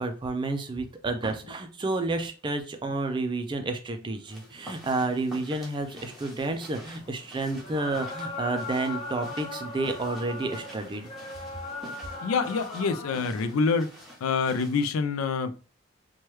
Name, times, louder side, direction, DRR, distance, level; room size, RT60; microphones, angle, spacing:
voice 1, 0.0-11.1, right 2 dB, 25° right, 0.4 m, -30 dB
sound 1, 4.3-15.0, right 1 dB, ahead, 0.8 m, -48 dB
sound 2, 5.6-13.5, left 2 dB, 30° left, 0.5 m, -39 dB
voice 2, 12.2-13.9 14.2-15.6, left 4 dB, 85° left, 0.4 m, -26 dB
3.1 x 2.3 x 3.0 m
head